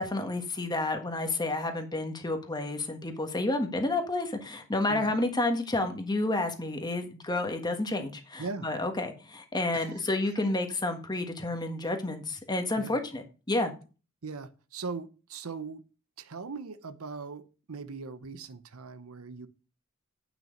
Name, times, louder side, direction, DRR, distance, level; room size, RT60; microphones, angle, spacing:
voice 1, 0.0-13.7, left 2 dB, 20° left, 1.4 m, -30 dB
voice 2, 14.2-15.8 16.2-19.5, right 4 dB, 85° right, 0.8 m, -40 dB
9.0 x 6.2 x 5.2 m
head